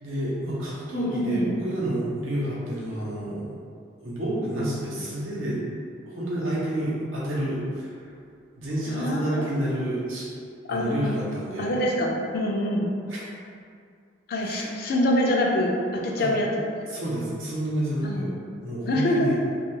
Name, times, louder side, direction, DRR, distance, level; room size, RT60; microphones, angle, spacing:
voice 1, 0.0-3.5 4.0-5.6 6.1-8.1 8.6-10.3 10.7-11.7 13.1-13.3 14.4-14.7 16.2-16.3 16.9-18.3 18.6-19.3, right 1 dB, 85° right, -7 dB, 0.7 m, -29 dB
voice 2, 0.9-1.6 8.9-9.4 10.7-11.2 11.6-12.9 14.3-16.7 18.0-18.3 18.9-19.3, left 1 dB, 50° left, -1 dB, 0.3 m, -25 dB
2.3 x 2.2 x 2.9 m, 2.3 s
head